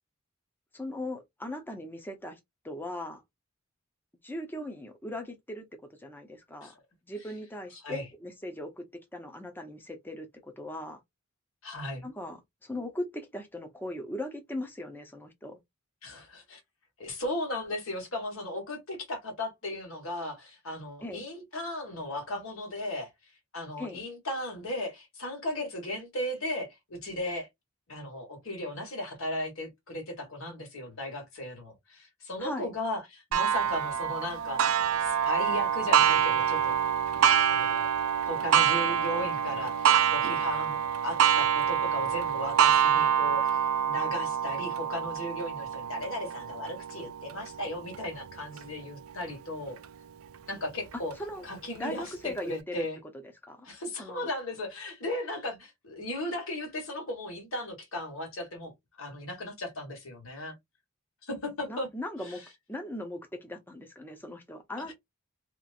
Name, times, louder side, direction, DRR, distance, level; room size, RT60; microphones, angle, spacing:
voice 1, 0.7-2.4 2.6-3.2 4.2-5.7 6.0-6.7 7.1-8.8 9.1-11.0 12.0-15.6 21.0-21.2 23.8-24.0 32.4-32.7 51.2-51.4 51.8-52.9 53.2-53.7 54.0-54.3 61.7-62.4 62.7-64.9, left 1 dB, 10° left, 0.6 m, -39 dB
voice 2, 11.6-12.1 16.0-16.6 17.0-23.1 23.5-27.5 27.9-36.7 37.4-37.9 38.2-40.8 41.0-49.8 50.5-51.1 51.4-53.0 53.6-60.5 61.2-61.9 62.2-62.4 64.8-64.9, left 1 dB, 70° left, 1.5 m, -36 dB
Clock, 33.3-48.6 49.2-49.3 49.8-49.9 50.9-51.0, right 9 dB, 75° right, 0.4 m, -26 dB
2.9 x 2.4 x 2.4 m
head